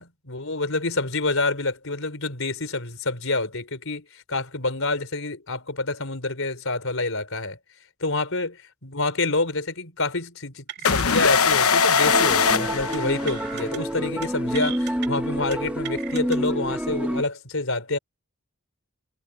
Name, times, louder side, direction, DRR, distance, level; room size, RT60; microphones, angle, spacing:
voice 1, 0.0-7.6 8.0-18.0, left 2 dB, 65° left, 5.1 m, -27 dB
sound 1, 10.7-11.2 11.5-11.7 12.0-12.3 12.9-13.8 14.1-14.3 14.5-15.1 15.5-16.4, right 9 dB, 55° right, 2.7 m, -37 dB
sound 2, 10.8-13.6, left 5 dB, 85° left, 1.0 m, -21 dB
sound 3, 12.0-17.2, equal, 5° right, 1.0 m, -28 dB
head